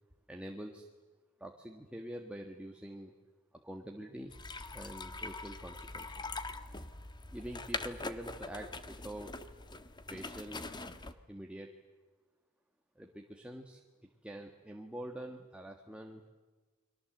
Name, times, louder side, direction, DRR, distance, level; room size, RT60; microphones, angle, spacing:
voice 1, 0.3-0.9 1.4-3.1 3.6-4.3 4.7-6.2 7.3-9.3 10.1-10.6 11.3-11.7 13.0-13.8 14.2-16.3, right 1 dB, 5° right, 2 dB, 1.5 m, -45 dB
sound 1, 4.3-11.1, left 3 dB, 20° left, 1.3 m, -43 dB
30.0 x 22.5 x 7.9 m, 1.3 s
head